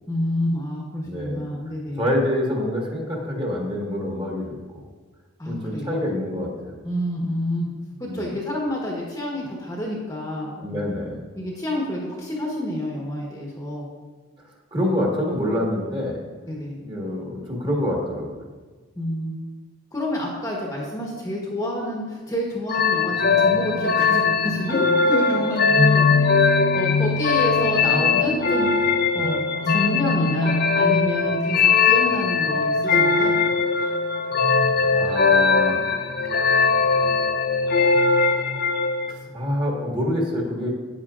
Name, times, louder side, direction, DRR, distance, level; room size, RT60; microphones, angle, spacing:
voice 1, 0.1-2.1 5.4-6.1 6.8-7.7 8.0-10.9 11.4-13.9 16.4-16.8 18.9-19.3 19.9-26.1 26.7-29.4 29.6-33.3, left 1 dB, 15° left, -3 dB, 1.0 m, -28 dB
voice 2, 1.0-1.5 1.9-4.8 5.4-6.8 8.1-8.3 10.6-11.2 14.7-16.2 16.7-18.4 34.9-35.8 39.1-40.7, left 1 dB, 20° right, -2 dB, 1.4 m, -26 dB
sound 1, 22.7-39.1, left 4 dB, 45° left, 0.5 m, -20 dB
10.0 x 8.9 x 2.5 m, 1.4 s
head